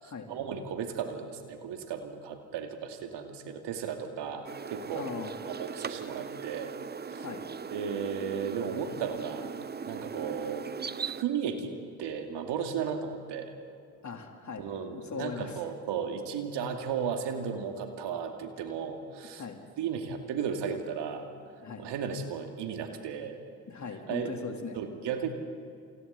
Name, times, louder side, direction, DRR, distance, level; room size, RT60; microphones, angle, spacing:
voice 1, 0.0-5.1 5.4-6.7 7.0-7.2 7.7-9.5 9.9-11.7 12.0-13.5 14.6-19.4 19.8-21.3 21.8-23.4 24.1-24.5 24.7-25.3, right 7 dB, 60° right, 4 dB, 2.6 m, -35 dB
sound 1, 4.4-11.2, right 6 dB, 20° right, 0.9 m, -39 dB
voice 2, 4.9-5.4 7.1-7.5 14.0-15.6 19.4-19.6 21.6-21.9 23.7-24.8, left 5 dB, 35° left, 2 dB, 3.8 m, -40 dB
29.0 x 28.0 x 4.3 m, 2.5 s
hypercardioid pair, 50°, 48 cm